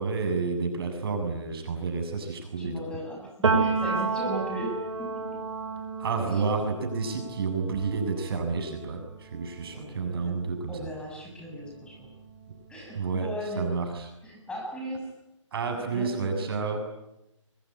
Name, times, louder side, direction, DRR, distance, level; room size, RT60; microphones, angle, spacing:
voice 1, 0.0-2.8 6.0-10.9 12.9-13.3 13.6-14.1 15.5-16.9, right 4 dB, 50° right, 5 dB, 7.4 m, -30 dB
voice 2, 2.6-5.4 6.3-6.7 9.7-10.0 10.2-10.3 10.7-12.1 12.7-13.7 14.2-15.1 15.7-16.5, equal, 5° left, -1 dB, 6.8 m, -37 dB
Piano, 3.4-11.0 11.4-12.9, right 4 dB, 70° right, 6.9 m, -32 dB
24.0 x 23.5 x 10.0 m, 0.88 s
figure-of-eight pair, 150°, 16 cm